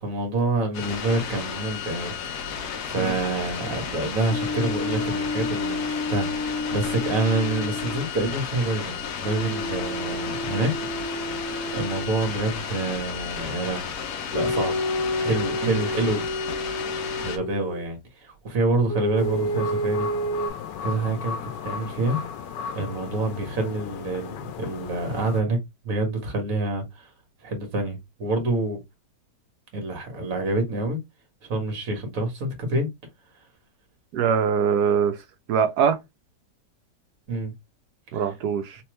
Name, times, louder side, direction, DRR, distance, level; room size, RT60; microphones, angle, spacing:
voice 1, 0.0-10.7 11.0-11.3 11.7-14.0 14.3-14.8 15.2-16.2 17.2-20.1 20.8-22.2 22.7-27.1 27.4-28.8 29.7-31.0 31.4-32.9 37.3-37.5 38.1-38.2, right 2 dB, 50° right, 1.7 m, -27 dB
sound 1, 0.7-17.4, left 7 dB, 70° left, 1.2 m, -33 dB
sound 2, 4.3-8.0 9.2-12.3 14.3-17.8 18.9-20.5, left 1 dB, 45° left, 1.4 m, -30 dB
sound 3, 19.2-25.4, left 7 dB, 90° left, 1.3 m, -36 dB
voice 2, 34.1-35.2 35.5-36.0 38.1-38.8, right 7 dB, 70° right, 1.1 m, -22 dB
3.4 x 3.0 x 3.1 m
omnidirectional pair, 1.9 m